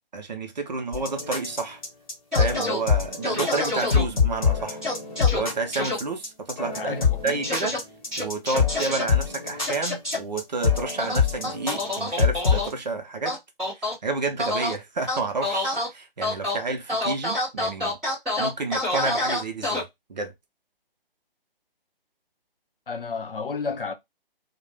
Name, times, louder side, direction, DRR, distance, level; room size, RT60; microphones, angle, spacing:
voice 1, 0.1-1.8 2.3-4.8 5.3-7.7 8.2-13.4 13.8-18.0 18.4-20.3, right 3 dB, 45° right, 0.6 m, -30 dB
sound 1, 0.9-12.7, left 6 dB, 35° left, 0.9 m, -25 dB
sound 2, 2.3-2.8 3.2-4.0 4.8-5.4 5.7-6.0 7.4-7.8 8.1-9.0 9.6-10.2 11.0-12.7 13.3-13.9 14.4-14.7 15.1-15.9 16.2-16.6 16.9-19.8, left 2 dB, ahead, 0.7 m, -27 dB
voice 2, 6.7-7.5 17.8-18.0 22.9-23.9, left 5 dB, 65° left, 0.6 m, -32 dB
2.4 x 2.1 x 3.2 m
figure-of-eight pair, 140°, 30 cm